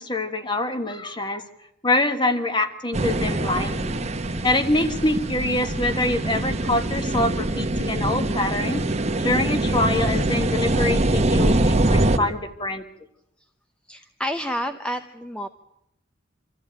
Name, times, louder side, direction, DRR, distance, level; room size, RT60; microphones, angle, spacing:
voice 1, 0.0-1.4 1.8-4.0 4.4-8.8 9.1-12.8, left 2 dB, 25° left, 8 dB, 1.5 m, -25 dB
sound 1, 2.9-12.2, right 1 dB, 35° right, 1.1 m, -23 dB
voice 2, 13.9-15.5, equal, 5° left, 6 dB, 0.7 m, -29 dB
25.5 x 14.0 x 8.8 m, 0.82 s
head